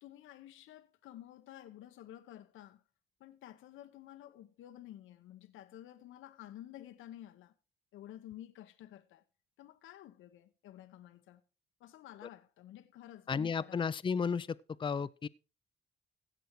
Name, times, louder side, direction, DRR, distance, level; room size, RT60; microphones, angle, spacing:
voice 1, 0.0-2.8 3.2-7.5 7.9-9.2 9.6-11.4 11.8-13.8, left 12 dB, 80° left, 0.9 m, -52 dB
voice 2, 13.3-14.5 14.8-15.3, left 6 dB, 25° left, 0.5 m, -33 dB
16.0 x 6.3 x 4.6 m
cardioid pair, 90°, 20 cm